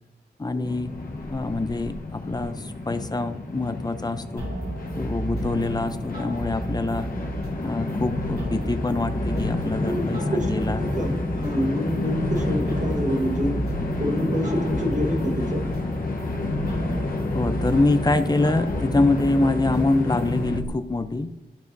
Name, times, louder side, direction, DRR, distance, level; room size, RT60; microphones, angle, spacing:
voice 1, 0.4-1.0 1.3-4.5 4.9-7.1 7.6-10.2 10.5-10.8 17.3-21.3, left 2 dB, 25° left, 10 dB, 0.5 m, -25 dB
Train, 0.6-20.6, left 2 dB, 55° left, 1.0 m, -29 dB
sound 1, 4.4-20.7, right 2 dB, 65° right, 2.5 m, -34 dB
voice 2, 9.8-13.6 14.0-15.6, equal, 45° right, 1 dB, 1.4 m, -27 dB
13.5 x 4.9 x 2.6 m, 0.91 s
wide cardioid pair, 95°, 17 cm